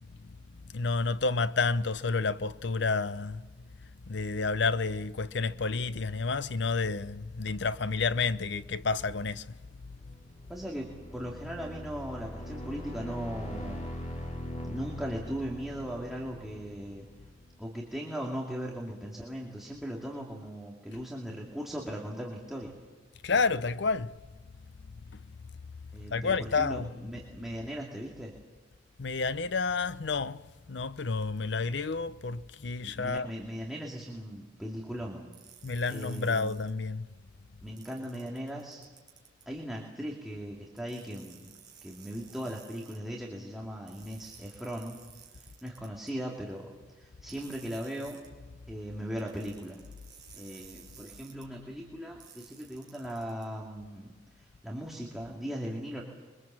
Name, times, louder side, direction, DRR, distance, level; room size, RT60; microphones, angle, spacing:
voice 1, 0.2-3.7 4.1-9.6 9.8-10.1 23.2-24.1 25.1-25.2 26.1-27.1 29.0-30.4 30.7-33.3 35.6-37.1 48.4-48.5, left 4 dB, 65° left, 0.7 m, -30 dB
sound 1, 9.9-17.6, left 1 dB, 35° left, 2.7 m, -41 dB
voice 2, 10.5-13.9 14.6-17.1 17.6-22.7 25.9-28.3 32.8-35.3 35.9-36.5 37.6-38.8 39.5-41.5 41.8-45.0 45.6-48.2 48.7-49.8 50.3-56.0, equal, ahead, 2.3 m, -38 dB
sound 2, 35.3-36.7 37.8-39.5 40.8-43.0 43.9-46.1 47.3-48.3 49.2-51.4 52.2-53.4, right 8 dB, 25° right, 4.1 m, -54 dB
27.0 x 23.0 x 7.5 m
head